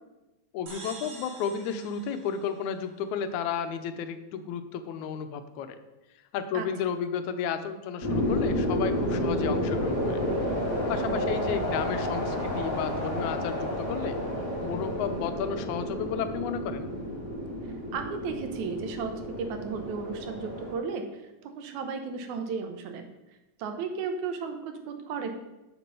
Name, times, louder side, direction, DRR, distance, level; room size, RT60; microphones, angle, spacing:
voice 1, 0.5-5.8 6.3-10.2 10.9-14.2 14.6-16.9, left 7 dB, 80° left, 9 dB, 2.1 m, -32 dB
sound 1, 0.7-3.2, right 3 dB, 70° right, 3.2 m, -47 dB
sound 2, 8.0-20.7, left 1 dB, 35° left, 3.3 m, -30 dB
voice 2, 11.0-11.4 17.9-23.1 23.6-25.4, right 5 dB, 85° right, 6 dB, 2.4 m, -34 dB
7.4 x 6.0 x 6.8 m, 1.0 s
omnidirectional pair, 3.4 m